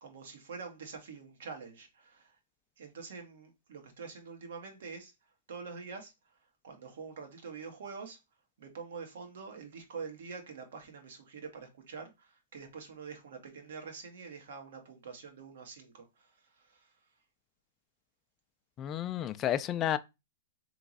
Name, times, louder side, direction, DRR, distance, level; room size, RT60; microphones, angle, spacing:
voice 1, 0.0-2.3 2.8-5.1 5.5-6.1 6.6-8.2 8.6-16.9, right 5 dB, 70° right, 1.4 m, -46 dB
voice 2, 18.8-20.0, left 11 dB, 20° left, 0.3 m, -31 dB
3.4 x 3.1 x 4.0 m
hypercardioid pair, 155°, 0 cm